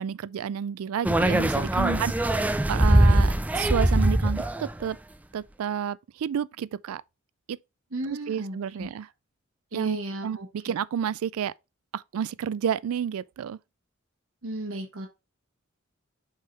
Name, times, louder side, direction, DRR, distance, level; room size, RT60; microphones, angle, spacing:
voice 1, 0.0-2.1 2.7-5.0 5.3-7.0 7.5-7.6 8.1-9.1 9.7-10.0 10.2-11.5 11.9-13.6, right 8 dB, 90° right, 0.3 m, -30 dB
sound 1, 1.0-4.8, right 1 dB, 5° right, 0.4 m, -22 dB
voice 2, 1.7-2.5 7.9-8.9 9.7-10.7 14.4-15.1, right 2 dB, 70° right, 1.2 m, -34 dB
6.4 x 3.7 x 4.0 m
head